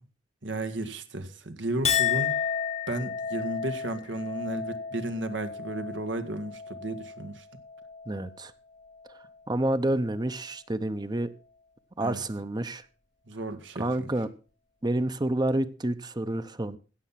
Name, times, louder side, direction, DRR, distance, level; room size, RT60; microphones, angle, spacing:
voice 1, 0.4-2.3 2.9-7.5 12.0-12.2 13.3-14.1, right 1 dB, 75° right, 9 dB, 1.8 m, -34 dB
Chink clink, 1.8-8.4 8.8-9.4, left 7 dB, 35° left, 0.9 m, -32 dB
voice 2, 8.1-8.5 9.5-11.3 12.0-12.8 13.8-14.3 14.8-16.8, right 1 dB, 20° right, 12 dB, 0.8 m, -28 dB
16.0 x 7.3 x 5.8 m, 0.36 s
head